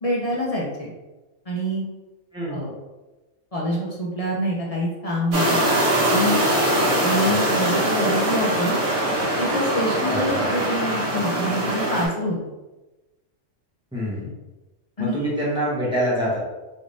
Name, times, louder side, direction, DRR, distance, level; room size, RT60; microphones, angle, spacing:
voice 1, 0.0-0.9 1.5-1.8 2.5-2.7 3.5-5.6 6.1-6.3 7.0-8.8 9.4-12.4 15.0-15.3, equal, 40° left, -5 dB, 0.5 m, -26 dB
voice 2, 2.3-2.6 7.3-7.4 10.1-10.4 13.9-14.3 15.0-16.4, equal, 5° right, -7 dB, 1.0 m, -25 dB
sound 1, 5.3-12.1, right 1 dB, 80° right, 1.2 m, -22 dB
3.3 x 3.1 x 2.6 m, 1.1 s
omnidirectional pair, 1.3 m